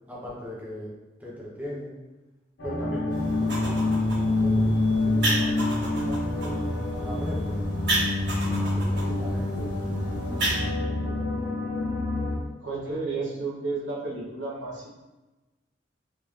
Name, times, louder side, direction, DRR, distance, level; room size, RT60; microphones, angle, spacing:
voice 1, 0.1-1.9 2.6-3.9 4.2-6.6 7.0-7.6 8.5-10.0 10.3-11.6, equal, 10° right, -7 dB, 1.0 m, -40 dB
sound 1, 2.6-12.4, left 2 dB, 80° left, 1.1 m, -27 dB
sound 2, 3.1-10.6, right 1 dB, 65° right, 1.4 m, -32 dB
voice 2, 12.6-14.9, right 3 dB, 80° right, -5 dB, 1.1 m, -32 dB
3.5 x 3.4 x 3.3 m, 1.1 s
head